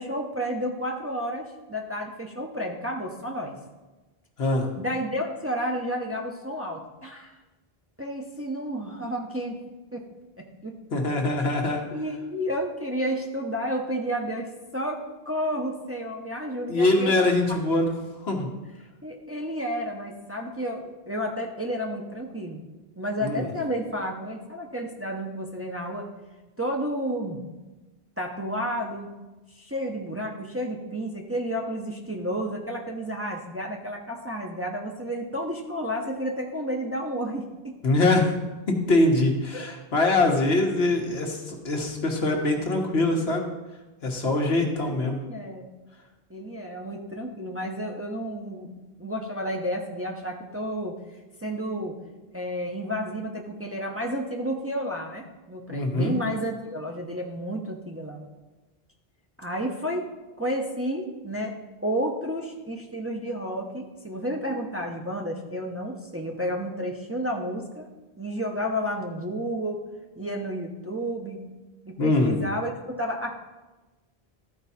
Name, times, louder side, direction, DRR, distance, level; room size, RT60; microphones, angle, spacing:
voice 1, 0.0-3.5 4.8-7.3 8.0-9.6 9.9-10.0 10.4-10.8 11.5-11.6 11.9-17.1 19.0-22.6 23.0-26.1 26.6-27.4 28.2-29.1 29.6-37.7 39.5-39.7 44.8-45.7 46.3-48.7 49.0-50.9 51.4-51.9 52.3-58.2 59.4-60.1 60.4-61.5 61.8-67.9 68.2-69.8 70.2-71.4 71.8-72.7 73.0-73.3, equal, 15° right, 0 dB, 0.7 m, -31 dB
voice 2, 10.9-11.8 16.7-17.9 18.2-18.5 23.2-23.5 37.8-38.3 38.7-43.4 44.0-45.2 55.7-56.1 72.0-72.3, left 2 dB, 80° left, 1 dB, 1.5 m, -23 dB
13.0 x 4.7 x 4.2 m, 1.1 s
omnidirectional pair, 1.0 m